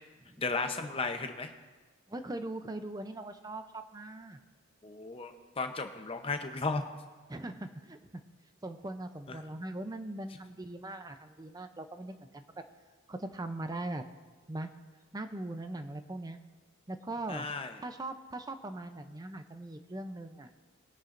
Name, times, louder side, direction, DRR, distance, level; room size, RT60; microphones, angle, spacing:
voice 1, 0.4-1.5 4.8-6.8 9.3-9.4 17.3-17.7, left 3 dB, 25° left, 6 dB, 0.7 m, -34 dB
voice 2, 2.1-4.4 7.3-8.0 8.6-12.4 13.1-14.0 14.5-14.7 15.1-16.4 16.9-17.5 17.8-20.5, right 2 dB, 20° right, 8 dB, 0.5 m, -40 dB
20.5 x 10.0 x 2.6 m, 1.3 s
head